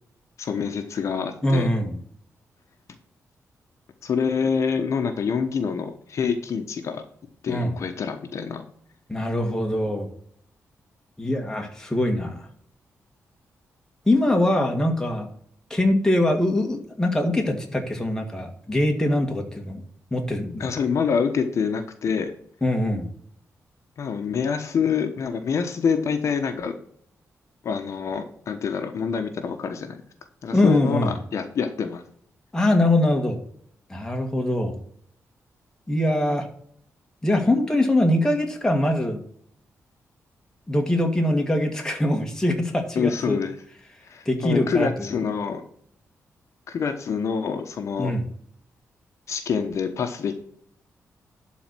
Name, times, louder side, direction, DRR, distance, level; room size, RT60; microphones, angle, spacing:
voice 1, 0.4-1.7 4.0-7.0 7.4-8.6 20.6-22.3 24.0-26.7 27.6-30.0 30.4-32.0 42.9-43.5 44.0-45.6 46.7-48.1 49.3-50.4, left 6 dB, 65° left, 7 dB, 1.1 m, -26 dB
voice 2, 1.4-2.0 7.5-7.8 9.1-10.1 11.2-12.5 14.1-15.3 15.7-19.8 20.1-20.7 22.6-23.1 30.5-31.2 32.5-33.4 33.9-34.8 35.9-36.5 37.2-39.2 40.7-43.4 44.3-45.1 48.0-48.2, left 1 dB, 10° left, 2 dB, 2.0 m, -23 dB
12.0 x 4.2 x 6.1 m, 0.63 s
wide cardioid pair, 125°, 6 cm